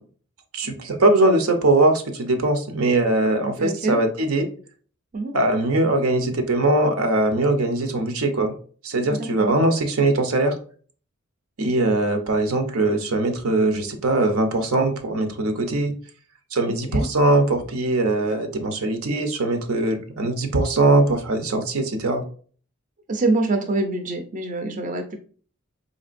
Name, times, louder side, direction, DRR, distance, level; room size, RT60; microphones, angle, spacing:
voice 1, 0.5-4.5 5.3-8.5 8.8-10.6 11.6-15.9 16.5-22.2, right 2 dB, 85° right, 6 dB, 0.8 m, -21 dB
voice 2, 3.4-4.0 5.1-5.3 9.1-9.6 16.7-17.1 23.1-25.2, right 2 dB, 40° right, 6 dB, 0.5 m, -25 dB
4.2 x 3.2 x 2.5 m, 0.43 s
head